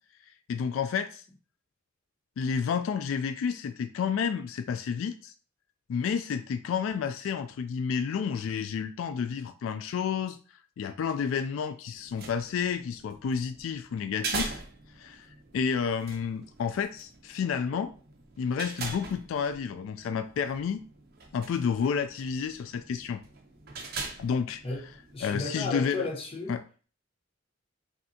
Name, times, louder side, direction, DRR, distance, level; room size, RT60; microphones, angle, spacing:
voice 1, 0.5-1.2 2.4-5.3 5.9-10.4 10.8-14.6 15.0-17.9 18.4-20.8 21.3-23.2 24.2-24.6 25.2-26.1 26.5-26.6, left 6 dB, 80° left, 0.3 m, -30 dB
sound 1, 11.9-25.4, right 4 dB, 50° right, 0.7 m, -42 dB
voice 2, 24.6-26.6, left 2 dB, 30° left, 0.9 m, -34 dB
5.5 x 2.7 x 2.7 m
head